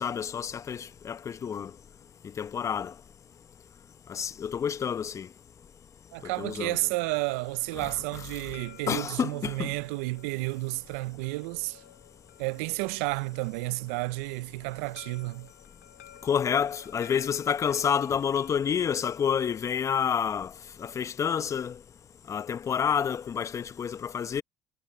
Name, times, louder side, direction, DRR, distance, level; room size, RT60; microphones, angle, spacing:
voice 1, 0.0-1.7 2.4-2.9 4.1-5.3 6.4-6.8 7.7-7.9 8.9-9.7 16.2-20.5 20.8-21.8 22.3-24.4, left 7 dB, 45° left, 1.0 m, -29 dB
sound 1, 6.1-20.0, left 11 dB, 90° left, 2.6 m, -56 dB
voice 2, 6.1-11.8 12.4-15.5, right 25 dB, 80° right, 0.7 m, -31 dB
hypercardioid pair, 55°, 7 cm